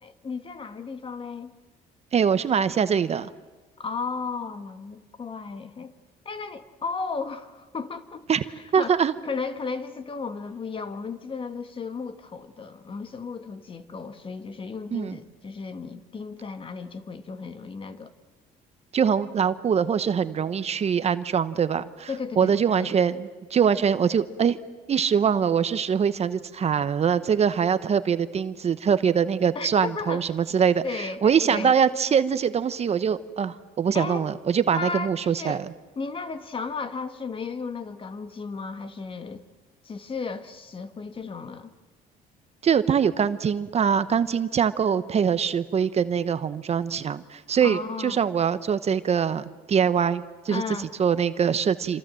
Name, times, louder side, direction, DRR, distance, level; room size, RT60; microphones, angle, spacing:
voice 1, 0.0-1.5 3.8-5.9 6.2-8.3 8.8-18.1 22.1-22.5 22.8-22.9 29.5-30.2 30.8-31.7 33.9-34.3 34.7-35.6 35.9-39.4 39.8-41.7 47.6-48.2 50.5-50.9, left 4 dB, 30° left, 10 dB, 1.6 m, -34 dB
voice 2, 2.1-3.3 8.3-8.4 8.7-9.1 14.9-15.2 18.9-22.1 22.4-24.6 24.9-35.7 42.6-52.0, right 7 dB, 40° right, 12 dB, 1.0 m, -23 dB
27.5 x 26.5 x 7.7 m, 1.3 s
cardioid pair, 110°, 17 cm